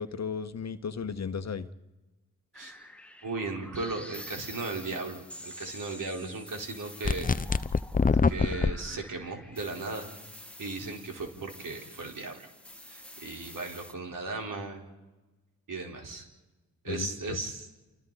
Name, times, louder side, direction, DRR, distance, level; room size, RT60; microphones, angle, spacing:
voice 1, 0.0-1.7 16.9-17.4, left 6 dB, 50° left, 10 dB, 1.3 m, -35 dB
sound 1, 2.5-13.9, left 1 dB, 5° left, 2.1 m, -48 dB
voice 2, 3.2-7.6 8.3-10.1 10.6-12.5 12.8-14.8 15.7-16.3 16.8-17.7, right 3 dB, 65° right, 1 dB, 4.3 m, -36 dB
sound 2, 7.0-8.7, left 4 dB, 25° left, 0.8 m, -24 dB
29.5 x 26.0 x 4.1 m, 1.1 s
supercardioid pair, 50°, 34 cm